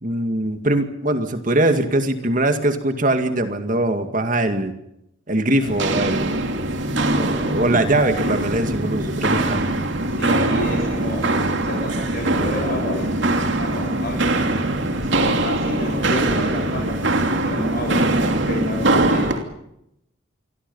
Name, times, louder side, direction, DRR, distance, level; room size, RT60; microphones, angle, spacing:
voice 1, 0.0-4.7 5.3-6.4 7.2-9.6, right 1 dB, 40° right, 7 dB, 2.2 m, -21 dB
voice 2, 5.6-6.1 10.1-11.3 11.6-13.3 13.6-14.2 15.0-19.3, left 1 dB, 45° left, 1 dB, 7.6 m, -31 dB
Walk footsteps, 5.6-19.4, right 2 dB, 60° right, 3.0 m, -22 dB
28.0 x 23.5 x 5.6 m, 0.81 s
head